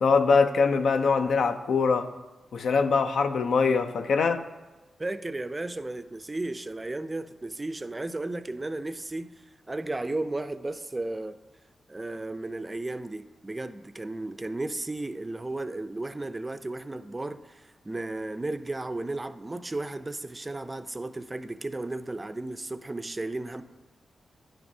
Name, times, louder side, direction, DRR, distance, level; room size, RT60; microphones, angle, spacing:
voice 1, 0.0-2.1 2.5-4.4, left 5 dB, 75° left, 9 dB, 0.4 m, -23 dB
voice 2, 5.0-9.3 9.7-11.4 11.9-23.6, right 2 dB, 25° right, 11 dB, 0.4 m, -34 dB
10.0 x 5.9 x 2.7 m, 1.2 s
cardioid pair, 70°, 0 cm